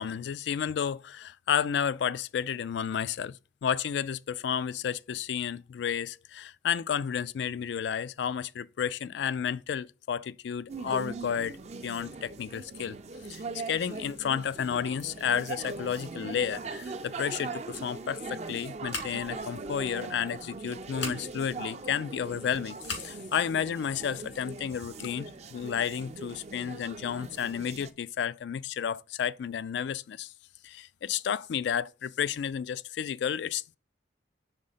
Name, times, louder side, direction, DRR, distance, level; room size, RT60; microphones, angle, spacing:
voice 1, 0.0-11.6 11.8-13.0 13.3-30.3 30.6-33.8, left 8 dB, 65° left, 0.3 m, -32 dB
sound 1, 10.7-27.9, right 3 dB, 35° right, 0.4 m, -41 dB
Scissors, 18.9-19.4 20.9-21.2 22.8-23.1, left 4 dB, 85° left, 2.5 m, -36 dB
5.2 x 3.7 x 5.5 m
head